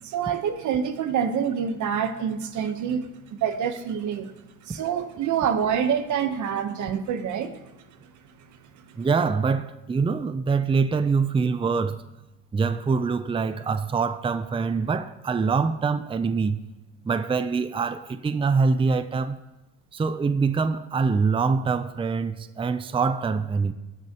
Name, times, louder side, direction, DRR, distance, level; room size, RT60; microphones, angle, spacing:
voice 1, 0.0-4.3 4.6-7.6, right 7 dB, 75° right, 1.0 m, -26 dB
voice 2, 9.0-12.0 12.5-16.6 17.0-19.4 19.9-23.7, right 5 dB, 20° right, 0.5 m, -24 dB
18.0 x 6.1 x 2.9 m
cardioid pair, 90°, 30 cm